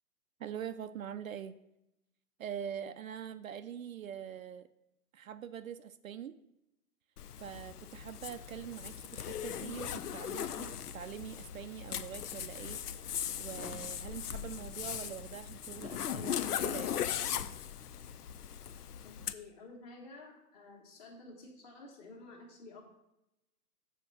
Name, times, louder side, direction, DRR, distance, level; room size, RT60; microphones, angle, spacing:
voice 1, 0.4-1.5 2.4-4.7 5.1-6.4 7.4-12.8 13.4-17.2, right 9 dB, 60° right, 11 dB, 0.5 m, -44 dB
Zipper (clothing), 7.2-19.3, left 9 dB, 75° left, 0.6 m, -39 dB
voice 2, 19.0-22.8, left 3 dB, 25° left, 0 dB, 1.5 m, -52 dB
7.8 x 4.5 x 6.2 m, 0.87 s
hypercardioid pair, 150°, 46 cm